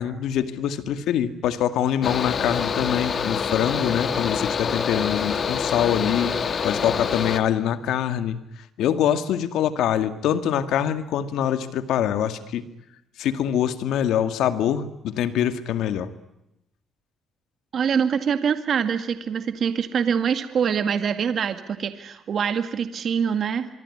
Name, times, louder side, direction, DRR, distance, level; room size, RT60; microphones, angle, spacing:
voice 1, 0.0-6.3 6.6-8.4 8.8-12.6 13.2-16.1, left 10 dB, 85° left, 10 dB, 2.1 m, -24 dB
Mechanical fan, 2.0-7.4, left 6 dB, 50° left, 1.8 m, -26 dB
voice 2, 17.7-23.7, right 7 dB, 60° right, 9 dB, 1.9 m, -24 dB
24.5 x 24.0 x 9.8 m, 0.88 s
cardioid pair, 90°, 0 cm